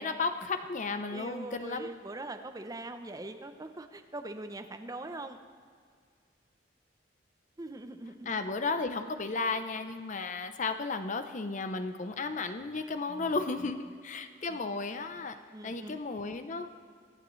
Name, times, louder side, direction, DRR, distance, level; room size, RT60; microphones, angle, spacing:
voice 1, 0.0-1.9 8.3-15.4 15.6-16.7, left 3 dB, 40° left, 9 dB, 0.7 m, -34 dB
voice 2, 1.1-5.4 7.6-8.3 13.1-13.7 14.5-14.6 15.5-16.0, right 2 dB, 20° right, 7 dB, 0.6 m, -42 dB
23.0 x 8.9 x 3.2 m, 2.1 s
head